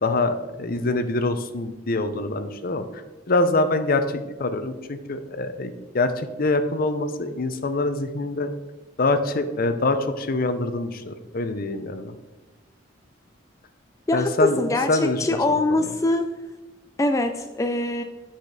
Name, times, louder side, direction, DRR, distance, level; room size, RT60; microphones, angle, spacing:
voice 1, 0.0-3.0 3.3-8.5 9.0-12.1 14.1-14.6 14.9-15.9, left 2 dB, 50° left, 9 dB, 0.6 m, -25 dB
voice 2, 14.1-16.2 17.0-18.0, left 2 dB, 15° left, 5 dB, 0.4 m, -23 dB
8.6 x 5.1 x 3.9 m, 1.2 s
head